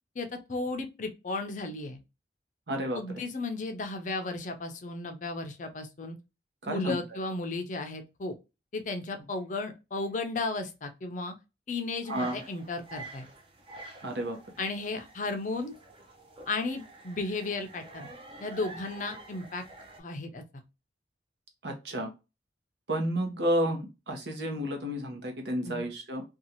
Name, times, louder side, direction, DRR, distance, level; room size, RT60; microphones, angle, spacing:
voice 1, 0.2-2.0 2.9-6.2 6.7-8.4 8.7-11.3 11.7-13.3 14.6-15.7 16.5-18.1 18.4-19.6 20.0-20.4 25.6-25.9, left 3 dB, 45° left, 6 dB, 0.5 m, -34 dB
voice 2, 2.7-3.2 6.6-7.0 12.1-12.4 14.0-14.4 21.6-22.1 22.9-26.2, right 1 dB, 70° right, 3 dB, 0.9 m, -31 dB
sound 1, 12.1-20.0, right 2 dB, 30° right, 0.6 m, -48 dB
2.6 x 2.3 x 2.8 m, 0.26 s
head